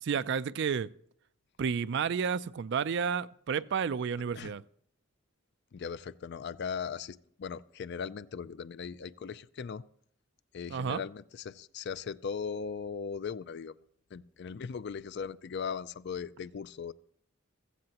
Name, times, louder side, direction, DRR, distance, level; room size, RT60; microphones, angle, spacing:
voice 1, 0.0-0.9 1.6-4.6 10.7-11.0, right 6 dB, 55° right, 0.4 m, -31 dB
voice 2, 5.7-9.8 10.5-13.7 14.1-16.9, left 6 dB, 55° left, 0.4 m, -38 dB
15.5 x 14.5 x 2.9 m
head